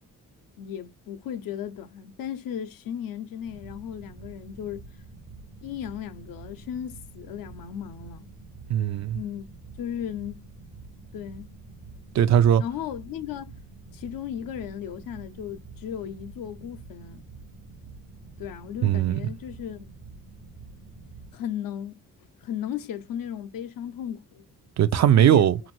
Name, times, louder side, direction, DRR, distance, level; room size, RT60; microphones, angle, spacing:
voice 1, 0.6-4.8 5.6-8.3 9.1-9.5 9.8-10.4 11.1-11.5 12.6-13.5 13.9-17.2 18.4-19.9 21.3-22.0 22.4-24.4 25.1-25.6, left 9 dB, 70° left, 0.5 m, -35 dB
sound 1, 3.4-21.3, right 3 dB, 90° right, 1.0 m, -47 dB
voice 2, 8.7-9.2 12.1-12.6 18.8-19.2 24.8-25.6, right 10 dB, 50° right, 0.4 m, -19 dB
2.6 x 2.5 x 3.0 m
cardioid pair, 65°, 35 cm